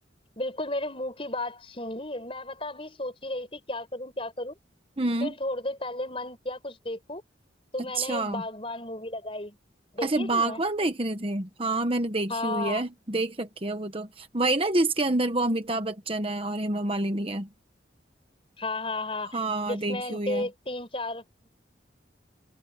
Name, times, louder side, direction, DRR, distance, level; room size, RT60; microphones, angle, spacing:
voice 1, 0.4-4.5 5.2-7.2 7.7-9.6 9.9-10.6 12.3-12.8 18.6-21.2, left 2 dB, 30° left, 6.5 m, -33 dB
voice 2, 5.0-5.3 7.8-8.4 10.0-17.5 19.3-20.5, right 2 dB, 30° right, 1.2 m, -28 dB
open air
head